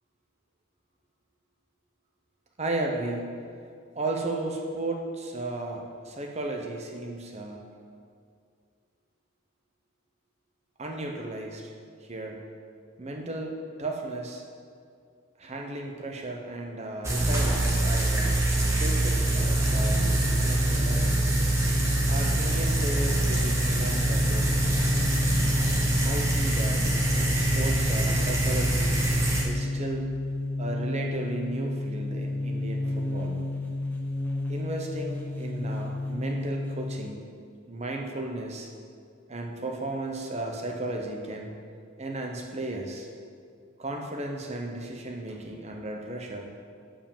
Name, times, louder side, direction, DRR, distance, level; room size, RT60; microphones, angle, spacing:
voice 1, 2.6-3.5 3.9-7.7 10.8-11.7 12.0-12.5 13.0-14.4 15.4-18.4 18.7-21.2 22.1-24.6 26.0-28.9 29.4-30.1 30.6-33.4 34.5-37.3 37.7-38.7 39.3-41.6 42.0-43.1 43.8-46.5, right 2 dB, 30° right, 1 dB, 0.9 m, -35 dB
sound 1, 17.0-29.4, right 2 dB, 15° right, 1.2 m, -25 dB
sound 2, 18.8-37.1, left 2 dB, 10° left, 0.8 m, -31 dB
7.8 x 5.0 x 7.2 m, 2.3 s
head